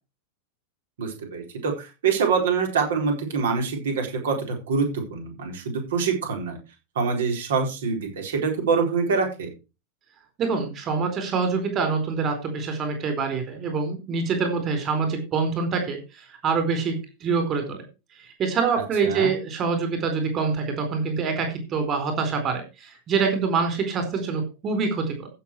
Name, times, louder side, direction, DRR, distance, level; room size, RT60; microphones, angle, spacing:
voice 1, 1.0-6.6 7.0-9.5 19.0-19.3, right 5 dB, 60° right, 3 dB, 4.4 m, -25 dB
voice 2, 10.4-17.8 18.2-25.3, right 5 dB, 30° right, 7 dB, 4.4 m, -25 dB
15.0 x 6.9 x 4.7 m, 0.29 s
figure-of-eight pair, 90°, 0 cm